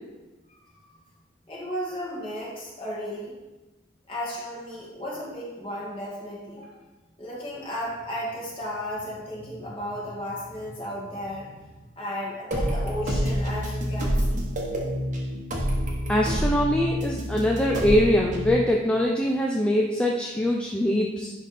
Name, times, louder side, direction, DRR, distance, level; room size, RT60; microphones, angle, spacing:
voice 1, 1.5-3.3 4.1-6.7 7.2-14.6, equal, 25° left, -6 dB, 2.1 m, -34 dB
sound 1, 12.5-18.5, equal, 40° right, 1.0 m, -27 dB
voice 2, 16.1-21.3, left 1 dB, 5° left, -1 dB, 0.4 m, -23 dB
10.0 x 3.4 x 4.2 m, 1.1 s
head